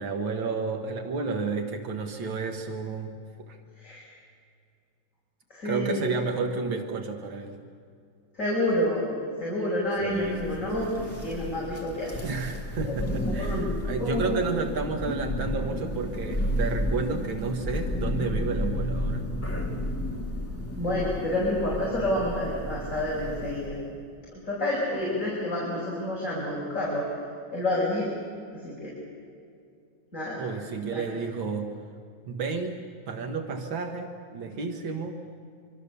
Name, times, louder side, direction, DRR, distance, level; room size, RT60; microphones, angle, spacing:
voice 1, 0.0-3.6 5.6-7.6 10.0-10.9 12.2-19.3 30.4-31.7 32.3-35.2, right 4 dB, 85° right, 4 dB, 2.3 m, -31 dB
voice 2, 5.5-6.1 8.4-9.1 9.4-12.1 12.8-13.0 13.3-13.7 14.0-14.5 20.8-23.8 24.3-27.1 27.5-28.1 28.5-28.9 30.1-30.5 30.9-31.0, left 1 dB, 40° left, -5 dB, 6.0 m, -29 dB
Thunder, 10.2-23.8, equal, 5° left, 2.5 m, -32 dB
26.0 x 25.0 x 7.0 m, 2.4 s
omnidirectional pair, 2.1 m